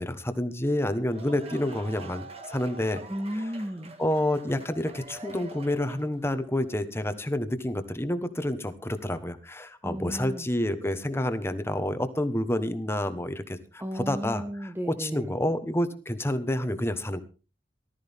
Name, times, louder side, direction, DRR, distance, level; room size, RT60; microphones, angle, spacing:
voice 1, 0.0-3.0 4.0-17.2, left 1 dB, 15° left, 9 dB, 1.2 m, -29 dB
sound 1, 1.0-6.2, right 2 dB, 35° right, 1.8 m, -45 dB
voice 2, 3.1-3.9 9.8-10.5 13.8-15.3, equal, 10° right, 8 dB, 0.8 m, -34 dB
19.0 x 13.0 x 3.6 m, 0.34 s
head